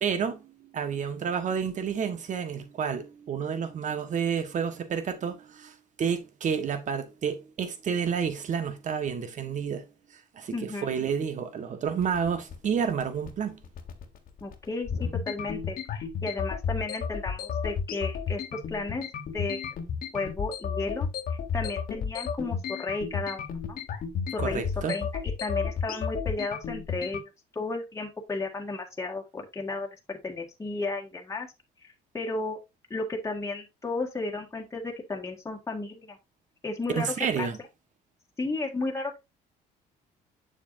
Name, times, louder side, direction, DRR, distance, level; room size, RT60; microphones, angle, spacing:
voice 1, 0.0-9.8 10.3-13.6 24.4-24.9 36.9-37.6, right 7 dB, 45° right, 1.4 m, -30 dB
voice 2, 10.5-11.1 14.4-19.0 19.3-19.6 20.1-23.8 24.3-25.1 25.4-31.5 31.8-32.6 32.9-36.2 36.6-37.5 38.4-39.2, left 3 dB, 15° left, 1.8 m, -34 dB
sound 1, 11.9-27.2, left 6 dB, 60° left, 1.6 m, -33 dB
7.0 x 6.8 x 2.6 m
cardioid pair, 110°, 17 cm